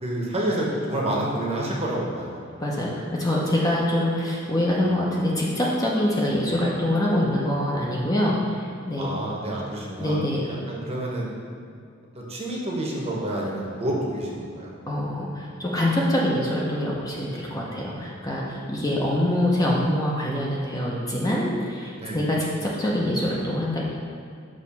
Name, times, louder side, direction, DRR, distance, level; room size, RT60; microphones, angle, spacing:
voice 1, 0.0-2.4 9.0-10.2 10.4-11.3 12.1-14.7 21.9-22.2, right 1 dB, 30° right, -3 dB, 0.9 m, -28 dB
voice 2, 2.6-9.1 10.0-10.4 14.9-23.9, left 1 dB, 20° left, -4 dB, 0.7 m, -25 dB
6.3 x 3.1 x 5.8 m, 2.2 s
head